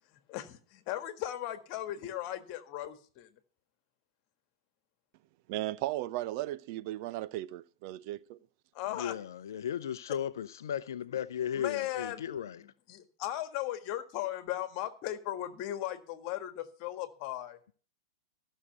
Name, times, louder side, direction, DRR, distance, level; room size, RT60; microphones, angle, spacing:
voice 1, 0.1-3.3 8.7-9.1 11.5-12.3 12.6-17.6, left 13 dB, 45° left, 1.7 m, -37 dB
voice 2, 5.5-8.4, right 15 dB, 50° right, 0.7 m, -36 dB
voice 3, 8.9-12.6, left 9 dB, 65° left, 0.6 m, -36 dB
14.5 x 6.5 x 8.0 m
figure-of-eight pair, 100°, 2 cm